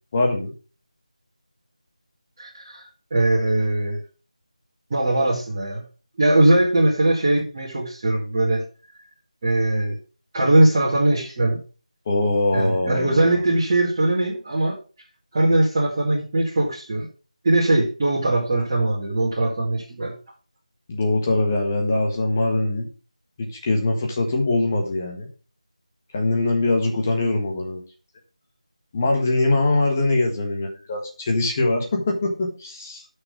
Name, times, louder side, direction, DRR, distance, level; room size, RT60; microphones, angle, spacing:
voice 1, 0.1-0.5 12.0-13.4 20.9-22.9 23.4-25.3 26.1-27.8 28.9-33.0, left 2 dB, 20° left, 1 dB, 1.6 m, -22 dB
voice 2, 2.4-4.0 4.9-5.8 6.2-8.6 9.4-10.0 10.3-11.6 12.5-14.8 15.3-17.1 17.4-20.1, right 2 dB, 25° right, -8 dB, 2.1 m, -20 dB
6.6 x 5.8 x 6.6 m, 0.35 s
figure-of-eight pair, 170°, 4 cm